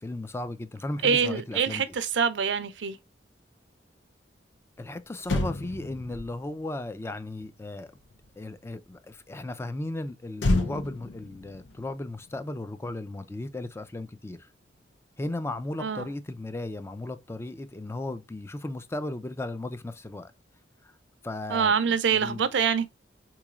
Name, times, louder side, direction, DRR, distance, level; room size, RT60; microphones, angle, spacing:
voice 1, 0.0-1.8 4.8-7.9 8.4-14.5 15.2-20.3 20.8-20.9 21.2-22.5, left 2 dB, 15° left, 0.3 m, -36 dB
voice 2, 1.0-3.0 15.8-16.1 21.5-22.8, right 6 dB, 85° right, 0.5 m, -25 dB
Motor vehicle (road), 4.8-4.9 5.2-8.7 10.4-13.0 13.2-13.5, left 2 dB, 90° left, 0.6 m, -32 dB
3.7 x 3.0 x 2.3 m
head